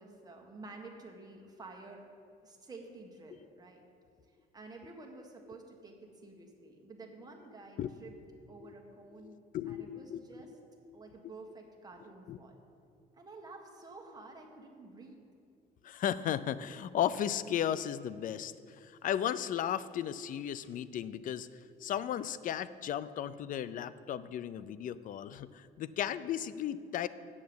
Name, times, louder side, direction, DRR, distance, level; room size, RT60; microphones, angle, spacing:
voice 1, 0.0-2.1 2.4-3.8 4.5-8.2 8.5-9.4 9.7-10.5 10.9-12.5 13.1-15.2, right 3 dB, 20° right, 1 dB, 1.6 m, -50 dB
voice 2, 9.2-10.2 10.5-10.6 10.9-11.0 12.3-12.4 15.8-21.5 21.8-27.1, left 10 dB, 50° left, 16 dB, 0.5 m, -35 dB
8.6 x 6.8 x 7.8 m, 2.5 s
cardioid pair, 110°, 17 cm